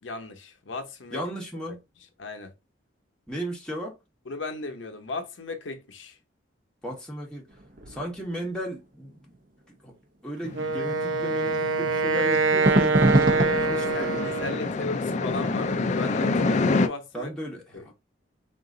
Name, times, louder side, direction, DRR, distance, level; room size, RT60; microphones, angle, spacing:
voice 1, 0.0-1.2 1.7-2.5 4.3-6.2 13.3-17.3 17.7-17.9, left 3 dB, 80° left, 0.7 m, -37 dB
voice 2, 1.1-1.8 3.3-4.0 6.8-7.4 7.9-9.3 9.7-9.9 10.2-14.7 17.1-17.9, right 1 dB, 5° left, 1.2 m, -35 dB
sound 1, 7.5-8.3 12.6-14.8 15.3-15.4, right 1 dB, 45° right, 0.8 m, -25 dB
sound 2, 10.4-16.9, left 3 dB, 40° left, 0.4 m, -28 dB
Wind instrument woodwind instrument, 10.5-14.8, right 3 dB, 80° right, 0.5 m, -25 dB
3.9 x 2.5 x 3.7 m
head